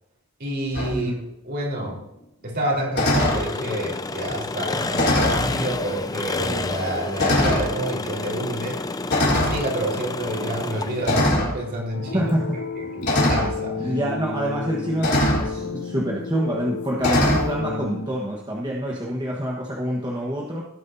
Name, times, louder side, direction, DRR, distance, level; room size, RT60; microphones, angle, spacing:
voice 1, 0.4-1.1 1.4-2.0 2.4-8.8 9.2-12.3 12.8-14.0, right 1 dB, 50° right, -2 dB, 4.1 m, -28 dB
sound 1, 0.7-0.9 2.9-3.4 4.9-5.5 6.3-6.4 7.2-7.7 9.1-9.6 11.1-11.5 13.0-13.5 15.0-15.5 17.0-17.5, left 1 dB, 50° left, 3.5 m, -21 dB
Engine, 3.2-11.3, left 3 dB, 15° left, 0.4 m, -29 dB
sound 2, 11.9-18.1, left 3 dB, 70° left, 0.9 m, -32 dB
voice 2, 12.1-12.6 13.8-20.6, right 1 dB, 20° right, -3 dB, 1.3 m, -26 dB
18.0 x 9.7 x 2.7 m, 0.87 s
head